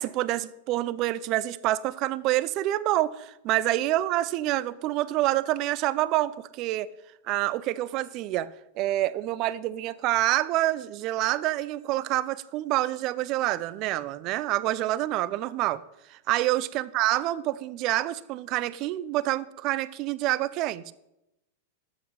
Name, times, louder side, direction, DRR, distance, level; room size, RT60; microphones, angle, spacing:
voice 1, 0.0-6.9 7.3-8.5 8.8-15.8 16.1-20.9, right 15 dB, 45° right, 0.6 m, -27 dB
12.5 x 8.1 x 5.6 m
hypercardioid pair, 105°, 0 cm